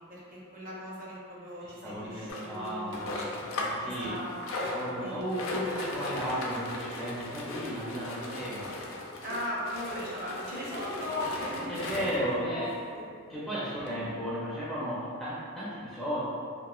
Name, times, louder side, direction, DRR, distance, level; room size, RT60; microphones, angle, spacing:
voice 1, 0.1-3.1 3.8-5.1 9.2-13.1 13.8-14.2, left 1 dB, 40° right, -6 dB, 0.6 m, -38 dB
voice 2, 1.8-3.2 3.5-4.2 4.7-8.7 11.7-12.8 13.3-16.2, equal, ahead, -10 dB, 0.4 m, -34 dB
sound 1, 2.3-3.9 4.1-12.3 13.0-13.1 13.3-13.4 13.9-14.0, left 2 dB, 65° left, 0.4 m, -37 dB
2.9 x 2.4 x 2.3 m, 2.3 s
head